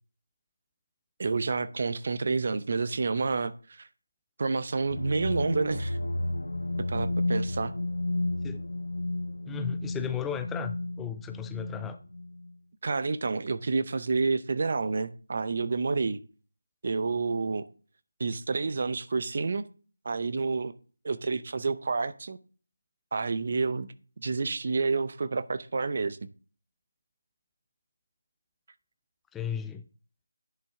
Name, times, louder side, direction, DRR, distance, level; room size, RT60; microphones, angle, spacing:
voice 1, 1.2-3.9 4.4-6.0 6.8-7.7 12.8-16.2 16.8-17.7 18.2-19.6 20.0-20.7 21.0-22.4 23.1-23.9 24.2-26.2, right 4 dB, 45° right, 0.6 m, -29 dB
sound 1, 4.8-12.5, left 2 dB, 85° left, 0.7 m, -32 dB
voice 2, 9.5-12.0 29.3-29.8, left 9 dB, 5° left, 0.3 m, -35 dB
10.0 x 5.4 x 3.6 m
figure-of-eight pair, 165°, 0 cm